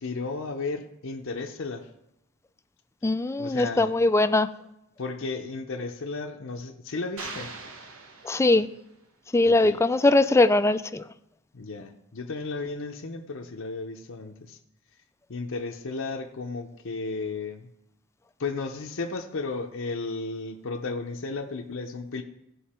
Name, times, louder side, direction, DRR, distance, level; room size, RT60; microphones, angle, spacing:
voice 1, 0.0-1.9 3.4-3.9 5.0-7.5 9.4-9.8 11.5-14.6 15.3-17.7 18.4-22.2, left 3 dB, 65° left, 3 dB, 0.7 m, -34 dB
voice 2, 3.0-4.5 8.2-8.7 9.3-11.0, left 2 dB, 15° left, 11 dB, 0.4 m, -21 dB
sound 1, 7.2-8.9, right 3 dB, 65° right, 1.2 m, -41 dB
16.5 x 5.5 x 4.3 m, 0.84 s
head